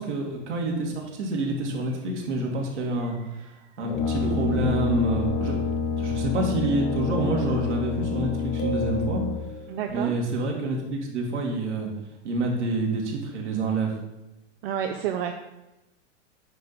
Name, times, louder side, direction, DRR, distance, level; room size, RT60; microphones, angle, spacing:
voice 1, 0.0-5.6 6.0-9.2 9.9-11.9 12.2-13.9, right 2 dB, 70° right, 0 dB, 2.4 m, -28 dB
sound 1, 1.4-1.5 1.8-1.9 2.2-2.3 3.0-3.5 4.2-9.0, right 7 dB, 15° right, 0.3 m, -39 dB
Brass instrument, 3.8-9.6, left 6 dB, 50° left, 1.4 m, -28 dB
sound 2, 8.6-10.1, left 1 dB, 30° left, 1.4 m, -36 dB
voice 2, 9.7-10.1 14.6-15.3, right 9 dB, 55° right, 5 dB, 0.7 m, -29 dB
9.2 x 4.0 x 5.7 m, 0.96 s
hypercardioid pair, 105°, 36 cm